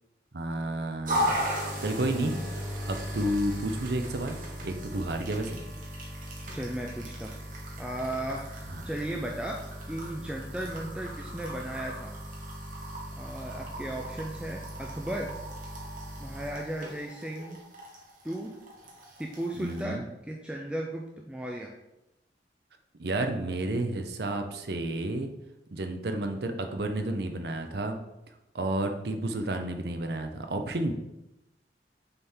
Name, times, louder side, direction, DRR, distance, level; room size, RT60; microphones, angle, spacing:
voice 1, 0.3-2.4 2.9-5.6 8.7-8.8 19.6-20.0 23.0-25.3 25.7-28.0 28.5-31.0, right 1 dB, 65° right, 5 dB, 0.7 m, -31 dB
sound 1, 1.0-19.8, equal, 45° right, 1.4 m, -37 dB
voice 2, 6.5-7.4 7.8-8.5 8.8-12.1 13.2-15.3 16.2-17.6 18.2-18.5 19.2-21.7, right 1 dB, 5° right, -1 dB, 0.4 m, -35 dB
6.7 x 3.6 x 4.4 m, 0.92 s
head